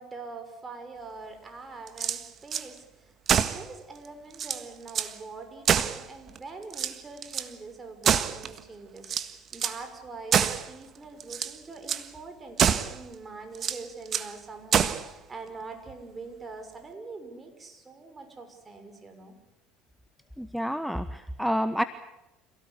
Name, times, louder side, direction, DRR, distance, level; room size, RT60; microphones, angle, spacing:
voice 1, 0.0-19.3, right 3 dB, 25° right, 6 dB, 6.3 m, -44 dB
sound 1, 1.9-2.7 3.3-3.7 4.1-4.2 4.3-5.2 5.7-6.4 6.7-7.5 8.0-8.6 9.0-9.8 10.3-10.7 11.2-11.6 11.9-12.1 12.6-13.0 13.6-14.3 14.7-15.1, right 8 dB, 45° right, 1.6 m, -26 dB
voice 2, 20.4-21.8, equal, ahead, 12 dB, 1.2 m, -29 dB
27.5 x 17.5 x 8.5 m, 0.98 s
hypercardioid pair, 70°, 0 cm